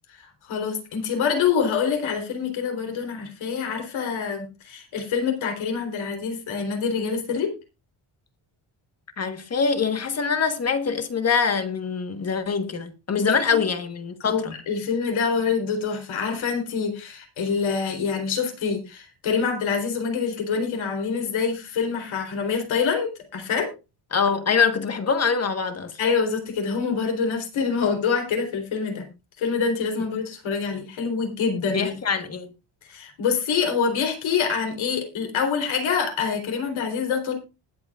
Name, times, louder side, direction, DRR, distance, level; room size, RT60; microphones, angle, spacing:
voice 1, 0.1-7.5 13.2-13.6 14.2-23.7 26.0-29.1 29.4-31.9 32.9-37.3, left 6 dB, 70° left, 3.9 m, -26 dB
voice 2, 9.2-14.5 24.1-26.0 31.7-32.5, left 6 dB, 30° left, 1.4 m, -24 dB
20.0 x 8.0 x 2.5 m
cardioid pair, 150°, 49 cm